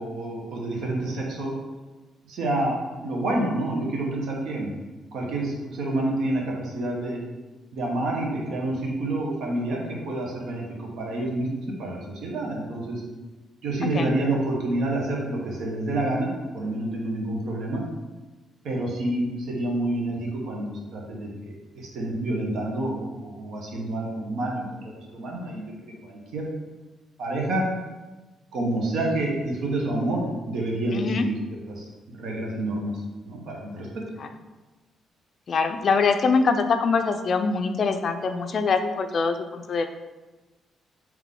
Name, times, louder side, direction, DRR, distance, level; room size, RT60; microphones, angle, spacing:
voice 1, 0.0-1.5 2.3-4.7 5.1-7.2 7.7-13.0 13.6-17.8 18.6-26.5 27.2-27.7 28.5-32.9 33.2-34.0, right 1 dB, 75° right, -1 dB, 1.0 m, -28 dB
voice 2, 30.9-31.2 34.2-34.3 35.5-39.9, left 4 dB, 50° left, 7 dB, 0.3 m, -23 dB
3.6 x 3.1 x 3.6 m, 1.2 s
cardioid pair, 90°, 0 cm